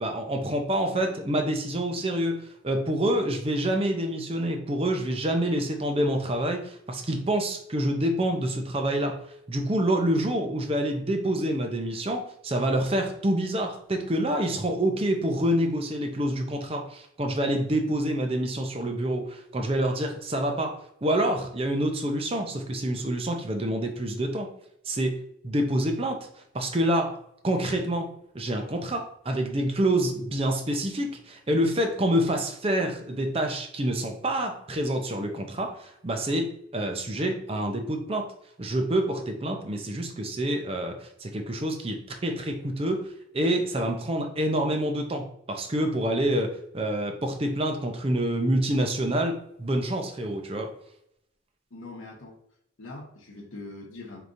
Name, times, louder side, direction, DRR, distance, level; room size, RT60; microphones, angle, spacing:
voice 1, 0.0-2.4 2.6-9.2 9.5-24.5 24.9-26.3 26.5-27.2 27.4-28.1 28.3-38.2 38.6-43.0 43.3-50.7, right 1 dB, 30° right, 4 dB, 0.5 m, -27 dB
voice 2, 51.7-52.4 52.8-54.2, left 2 dB, 80° left, -2 dB, 0.9 m, -42 dB
4.9 x 2.9 x 2.6 m, 0.72 s
head